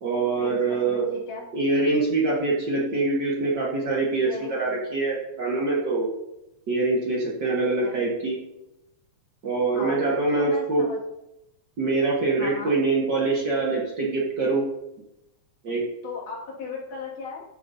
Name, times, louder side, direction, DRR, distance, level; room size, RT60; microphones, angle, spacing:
voice 1, 0.0-1.1 1.5-6.1 6.7-8.4 9.4-10.8 11.8-14.6 15.6-15.8, right 3 dB, 45° right, -5 dB, 1.5 m, -24 dB
voice 2, 0.8-1.4 4.2-4.8 7.6-8.0 9.7-10.0 10.3-11.0 12.4-12.7 16.0-17.4, left 4 dB, 80° left, -4 dB, 3.7 m, -36 dB
13.5 x 7.1 x 2.7 m, 0.89 s
omnidirectional pair, 3.5 m